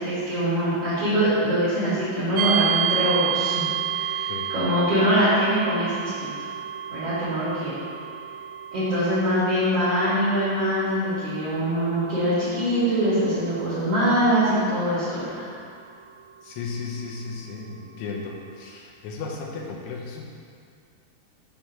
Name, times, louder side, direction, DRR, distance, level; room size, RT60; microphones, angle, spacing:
voice 1, 0.0-3.6 3.9-6.3 6.9-7.7 8.7-15.4, equal, 50° right, -12 dB, 1.9 m, -23 dB
sound 1, 2.4-17.2, right 8 dB, 85° right, 2.9 m, -31 dB
voice 2, 16.4-20.2, left 4 dB, 80° left, -1 dB, 2.7 m, -35 dB
7.0 x 3.9 x 6.0 m, 2.2 s
omnidirectional pair, 5.3 m